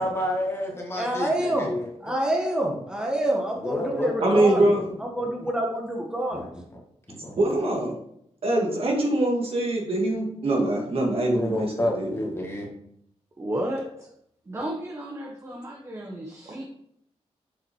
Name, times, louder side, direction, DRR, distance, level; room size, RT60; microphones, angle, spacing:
voice 1, 0.0-2.1 3.6-4.9 5.2-5.5 6.3-6.5 7.1-7.4 11.3-12.7, left 1 dB, 20° left, -1 dB, 1.9 m, -30 dB
voice 2, 1.0-1.7 2.0-4.6 5.0-6.5, right 1 dB, 5° right, 0 dB, 1.4 m, -27 dB
voice 3, 4.2-4.8 7.4-7.9 8.4-12.1, right 1 dB, 55° right, 0 dB, 2.2 m, -23 dB
voice 4, 13.4-14.1 14.5-16.6, right 1 dB, 25° right, 1 dB, 1.0 m, -33 dB
7.1 x 5.7 x 4.7 m, 0.71 s
wide cardioid pair, 160°, 11 cm